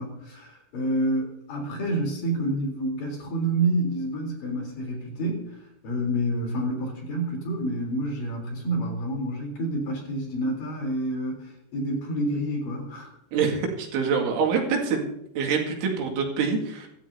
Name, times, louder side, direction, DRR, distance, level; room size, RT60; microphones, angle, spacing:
voice 1, 0.0-5.6 5.8-13.1, right 1 dB, 50° left, 0 dB, 5.0 m, -28 dB
voice 2, 13.3-15.1 15.4-16.9, right 5 dB, 90° right, 1 dB, 4.6 m, -25 dB
25.0 x 12.5 x 2.8 m, 0.77 s
omnidirectional pair, 5.3 m